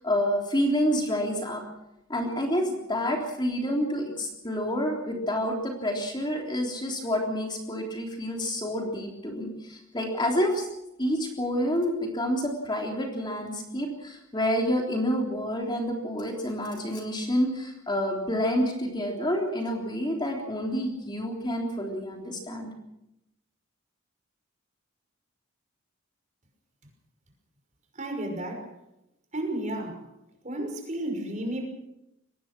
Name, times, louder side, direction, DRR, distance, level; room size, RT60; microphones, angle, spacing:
voice 1, 0.0-1.6 2.1-10.7 11.0-22.7, equal, 20° left, 1 dB, 3.5 m, -28 dB
voice 2, 27.9-28.8 29.3-30.1 30.4-31.7, right 1 dB, 35° right, 3 dB, 5.9 m, -32 dB
23.0 x 19.5 x 6.2 m, 0.87 s
head